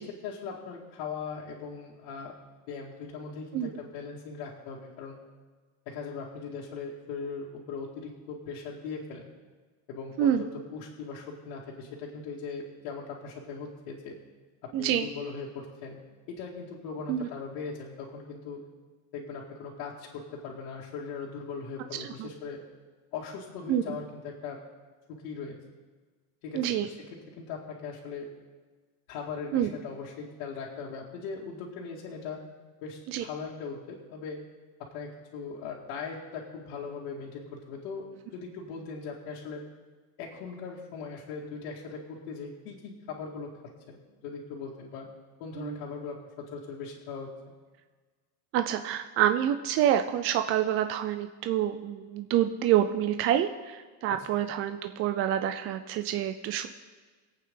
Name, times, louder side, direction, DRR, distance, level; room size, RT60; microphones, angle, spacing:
voice 1, 0.0-2.3 2.7-5.2 5.9-9.3 9.9-14.2 14.6-16.0 16.3-18.6 19.1-22.6 23.1-24.6 25.1-25.6 26.4-27.0 27.4-28.3 29.1-32.4 32.8-34.4 34.8-39.6 40.2-43.5 43.9-45.1 45.4-47.5, left 5 dB, 60° left, -6 dB, 2.4 m, -39 dB
voice 2, 14.7-15.1 17.1-17.3 22.2-22.3 23.7-24.0 26.5-26.9 29.5-29.7 33.1-33.2 45.6-45.8 48.5-56.7, right 11 dB, 30° right, 8 dB, 0.4 m, -27 dB
24.0 x 8.6 x 3.8 m, 1.4 s
supercardioid pair, 150°, 45 cm